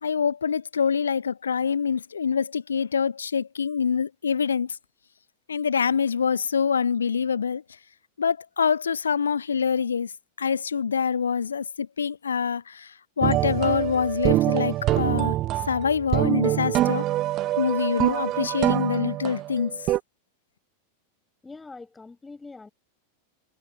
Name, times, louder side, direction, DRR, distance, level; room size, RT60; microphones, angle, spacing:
voice 1, 0.0-4.8 5.5-7.6 8.2-10.1 10.4-15.4 15.7-17.1 17.6-19.7, left 6 dB, 70° left, 0.4 m, -25 dB
sound 1, 13.2-20.0, right 15 dB, 35° right, 0.8 m, -25 dB
voice 2, 21.4-22.7, left 3 dB, 10° left, 6.1 m, -43 dB
figure-of-eight pair, 90°, 0 cm